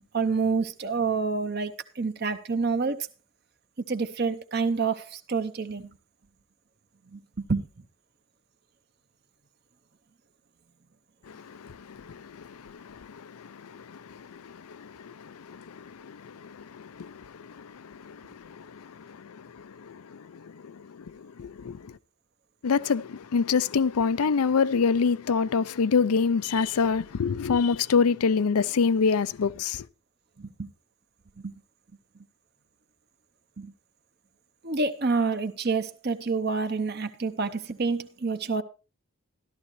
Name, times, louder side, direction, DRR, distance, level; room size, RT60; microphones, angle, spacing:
voice 1, 0.1-3.1 3.9-5.9 7.1-7.2 7.5-7.6 30.4-30.7 31.4-31.5 33.6-33.7 34.6-38.6, right 4 dB, 45° right, 0.8 m, -28 dB
voice 2, 11.3-22.0 22.6-29.9, left 5 dB, 85° left, 0.5 m, -27 dB
13.5 x 12.5 x 3.1 m
head